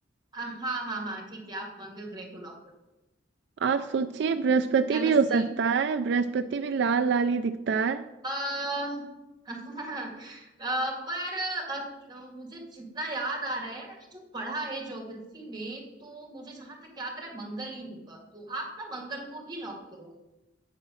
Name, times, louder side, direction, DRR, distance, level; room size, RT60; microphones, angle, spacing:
voice 1, 0.3-2.5 4.9-5.5 8.2-9.0 9.4-20.1, right 2 dB, 25° right, 0 dB, 2.1 m, -36 dB
voice 2, 3.6-8.0, right 5 dB, 70° right, 9 dB, 0.4 m, -25 dB
8.5 x 4.9 x 6.3 m, 1.0 s
head